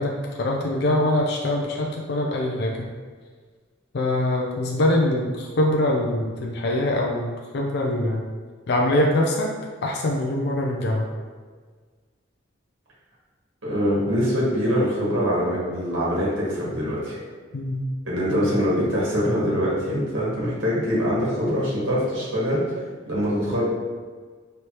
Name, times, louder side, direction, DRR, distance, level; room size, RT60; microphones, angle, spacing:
voice 1, 0.0-2.9 3.9-8.2 8.7-9.5 9.8-11.1 17.5-17.9 18.3-18.4, left 1 dB, 60° left, -1 dB, 0.5 m, -23 dB
voice 2, 13.6-17.2 18.0-22.6 23.1-23.6, equal, 80° right, -7 dB, 1.4 m, -23 dB
4.5 x 3.2 x 2.9 m, 1.5 s
head